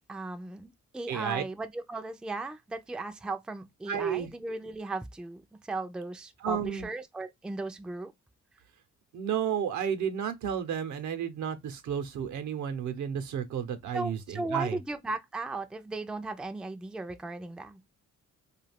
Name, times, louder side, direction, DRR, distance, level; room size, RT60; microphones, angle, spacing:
voice 1, 0.1-5.4 5.7-8.1 13.9-17.8, right 3 dB, 5° right, 0.4 m, -36 dB
voice 2, 1.1-1.4 3.9-4.3 6.4-6.9 9.1-14.8, right 8 dB, 70° right, 0.8 m, -32 dB
2.4 x 2.3 x 3.3 m
cardioid pair, 90°, 30 cm